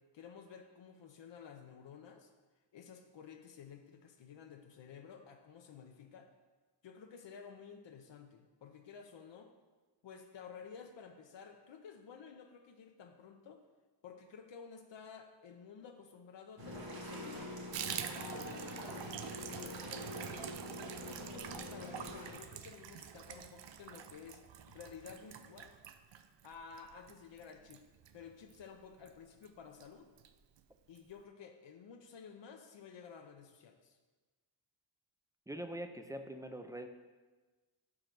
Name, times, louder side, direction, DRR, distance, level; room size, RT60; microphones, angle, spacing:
voice 1, 0.1-2.3 2.7-6.3 6.8-9.5 10.0-13.6 14.0-17.6 18.1-20.4 21.0-25.8 26.4-27.8 28.1-30.1 30.9-34.0, left 6 dB, 65° left, 4 dB, 0.8 m, -53 dB
sound 1, 16.6-22.3, left 1 dB, 50° right, 1.7 m, -45 dB
Water tap faucet / Bathtub (filling or washing), 17.7-28.7 29.0-29.1 29.4-29.5 29.8-30.3 30.6-30.7 30.9-31.0, right 9 dB, 65° right, 0.6 m, -46 dB
voice 2, 35.5-36.9, right 1 dB, 10° right, 7 dB, 0.4 m, -43 dB
5.1 x 4.9 x 6.0 m, 1.3 s
cardioid pair, 85°, 46 cm